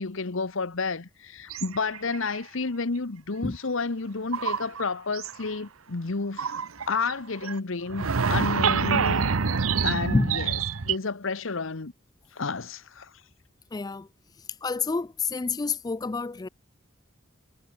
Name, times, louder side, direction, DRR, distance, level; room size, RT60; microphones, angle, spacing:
voice 1, 0.0-6.5 6.9-9.3 9.8-10.5 10.8-11.9 12.3-13.1, left 4 dB, 70° left, 1.0 m, -31 dB
sound 1, 1.5-2.4 4.3-4.8 5.1-5.5 6.4-7.1 7.4-7.6 7.9-11.0, right 5 dB, 85° right, 0.9 m, -26 dB
voice 2, 13.7-14.1 14.6-16.5, left 3 dB, 20° left, 0.3 m, -28 dB
head